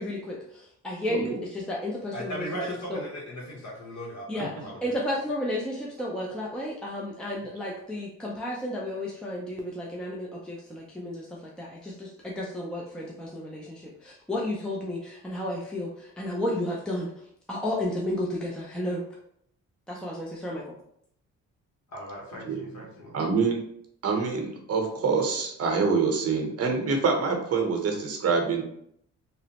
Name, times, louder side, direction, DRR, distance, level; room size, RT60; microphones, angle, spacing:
voice 1, 0.0-2.5 2.9-3.0 4.3-4.5 4.8-17.1 17.5-19.0 19.9-20.7, left 1 dB, 5° left, -4 dB, 0.5 m, -32 dB
voice 2, 2.1-4.9 21.9-23.1, equal, 65° left, -2 dB, 1.2 m, -38 dB
voice 3, 22.4-22.9 23.1-23.6 24.0-28.6, right 5 dB, 50° right, 2 dB, 0.8 m, -26 dB
2.9 x 2.0 x 2.9 m, 0.70 s
cardioid pair, 90°, 30 cm